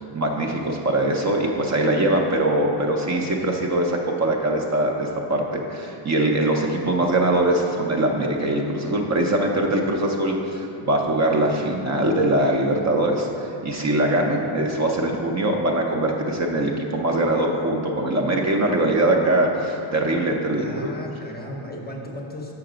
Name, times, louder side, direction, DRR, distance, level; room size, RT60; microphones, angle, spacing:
voice 1, 0.1-20.7, right 1 dB, 35° right, 1 dB, 0.5 m, -22 dB
voice 2, 20.5-22.5, left 1 dB, 20° left, 0 dB, 0.6 m, -35 dB
6.4 x 5.8 x 4.9 m, 2.8 s
cardioid pair, 145°, 50 cm